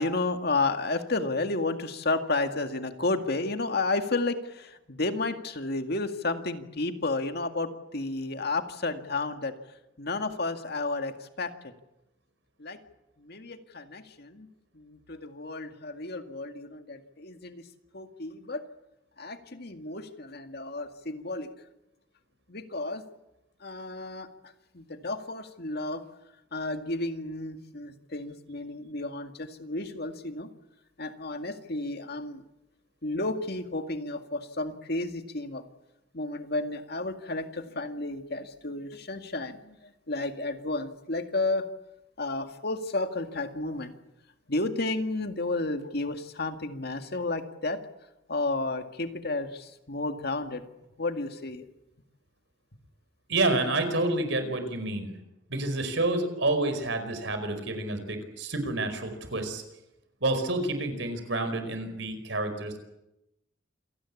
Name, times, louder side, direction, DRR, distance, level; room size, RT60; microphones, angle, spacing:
voice 1, 0.0-9.5 10.0-11.7 12.6-12.8 13.2-14.5 14.7-17.6 17.9-18.6 19.2-21.5 22.5-23.0 23.6-24.3 24.7-26.0 26.5-30.5 31.0-32.4 33.0-35.6 36.1-39.8 40.1-41.7 42.2-44.0 44.5-47.8 48.3-50.6 51.0-51.7, left 2 dB, 55° left, 7 dB, 2.0 m, -32 dB
voice 2, 53.3-55.1 55.5-59.6 60.2-62.8, right 2 dB, 70° right, 8 dB, 4.9 m, -29 dB
27.5 x 18.5 x 8.6 m, 0.89 s
head